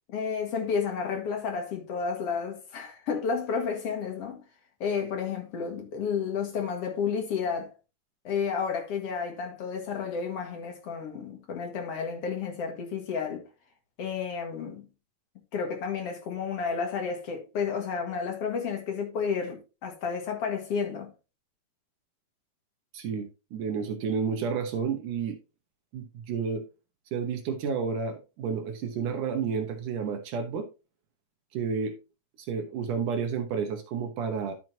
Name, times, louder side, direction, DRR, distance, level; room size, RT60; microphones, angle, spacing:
voice 1, 0.1-4.4 4.8-7.7 8.2-13.4 14.0-14.9 15.5-21.1, left 6 dB, 50° left, 1.9 m, -31 dB
voice 2, 22.9-25.4 25.9-26.6 27.1-30.7 31.5-32.0 32.4-34.5, right 6 dB, 75° right, 2.0 m, -31 dB
12.0 x 6.1 x 2.7 m
omnidirectional pair, 4.8 m